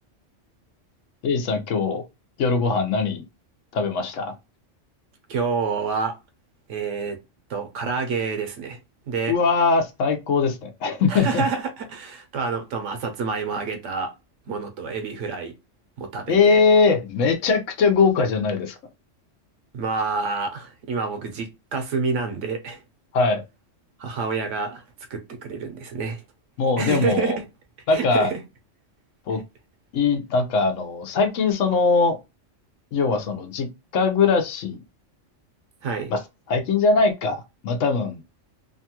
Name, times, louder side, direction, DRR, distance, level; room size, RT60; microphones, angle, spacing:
voice 1, 1.2-2.1 2.4-3.2 3.7-4.3 9.3-11.4 16.3-18.8 23.1-23.4 26.6-27.4 27.9-28.3 29.3-29.4 29.9-32.2 32.9-33.7 33.9-34.8 36.1-36.2 36.5-38.2, left 4 dB, 85° left, 1.1 m, -21 dB
voice 2, 5.3-6.2 6.7-7.2 7.5-8.8 9.1-9.4 11.1-14.1 14.5-15.5 16.0-16.6 19.7-22.8 24.0-24.8 25.1-26.2 26.8-27.4 27.9-28.4 35.8-36.1, right 5 dB, 75° right, 1.0 m, -28 dB
2.9 x 2.3 x 2.8 m
omnidirectional pair, 1.3 m